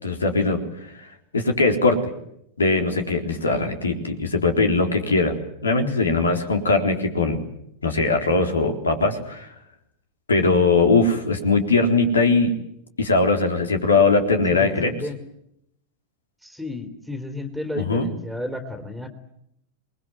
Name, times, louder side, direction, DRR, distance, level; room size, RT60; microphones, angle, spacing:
voice 1, 0.0-0.6 1.3-2.0 2.6-5.3 5.6-7.4 7.8-9.5 10.3-12.5 13.0-14.9 17.8-18.1, left 3 dB, 75° left, 6 dB, 3.9 m, -20 dB
voice 2, 14.5-15.2 16.4-19.1, left 2 dB, 5° left, 5 dB, 3.4 m, -32 dB
27.5 x 21.5 x 7.8 m, 0.76 s
figure-of-eight pair, 90°, 0 cm